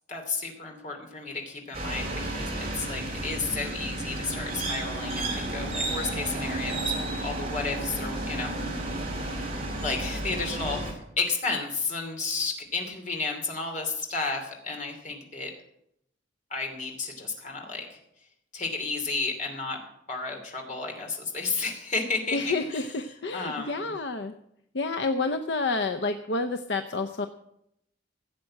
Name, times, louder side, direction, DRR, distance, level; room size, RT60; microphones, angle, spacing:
voice 1, 0.1-8.9 9.8-15.5 16.5-18.0 18.5-19.8 20.1-22.9 23.3-23.9, left 4 dB, 40° left, 2 dB, 2.8 m, -32 dB
sound 1, 1.7-10.9, right 2 dB, 30° right, 3.4 m, -32 dB
voice 2, 22.3-24.3 24.7-27.3, left 3 dB, 60° left, 7 dB, 0.7 m, -29 dB
16.0 x 7.6 x 7.5 m, 0.79 s
head